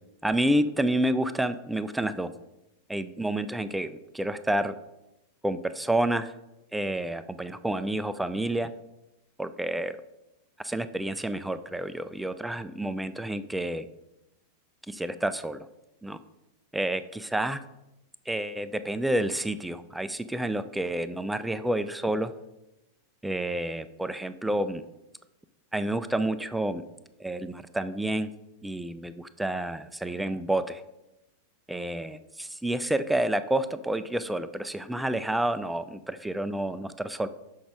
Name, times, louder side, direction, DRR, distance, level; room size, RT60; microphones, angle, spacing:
voice 1, 0.2-2.3 2.9-4.7 5.4-6.3 6.7-8.7 9.4-10.0 10.6-13.9 14.9-15.6 16.0-16.2 16.7-17.6 18.3-22.3 23.2-24.8 25.7-26.8 27.2-28.3 28.6-30.8 31.7-37.3, right 1 dB, 5° right, 11 dB, 0.3 m, -29 dB
6.1 x 6.0 x 4.8 m, 0.93 s
figure-of-eight pair, 90°, 0 cm